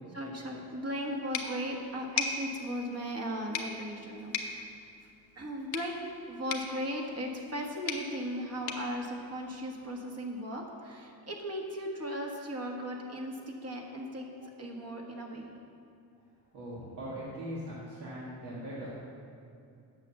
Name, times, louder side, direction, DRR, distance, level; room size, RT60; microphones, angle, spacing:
voice 1, 0.1-4.7 5.3-5.9 6.3-15.5, equal, 40° right, 0 dB, 1.6 m, -37 dB
sound 1, 1.3-10.0, left 5 dB, 90° left, 1.1 m, -40 dB
voice 2, 16.5-19.0, equal, 75° right, -7 dB, 2.0 m, -40 dB
8.9 x 6.9 x 7.1 m, 2.5 s
cardioid pair, 120°, 39 cm